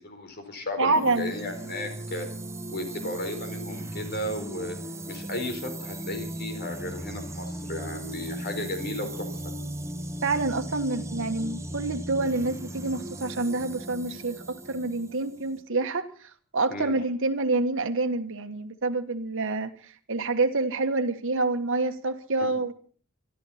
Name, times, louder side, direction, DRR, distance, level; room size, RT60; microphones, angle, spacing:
voice 1, 0.0-2.3 2.7-4.8 5.1-9.4 16.7-17.0, left 1 dB, 50° left, 6 dB, 4.3 m, -34 dB
voice 2, 0.8-1.3 10.2-22.7, right 3 dB, 65° right, 7 dB, 1.5 m, -27 dB
sound 1, 0.9-15.6, right 1 dB, 15° right, 1.0 m, -37 dB
25.0 x 13.0 x 4.2 m, 0.43 s
head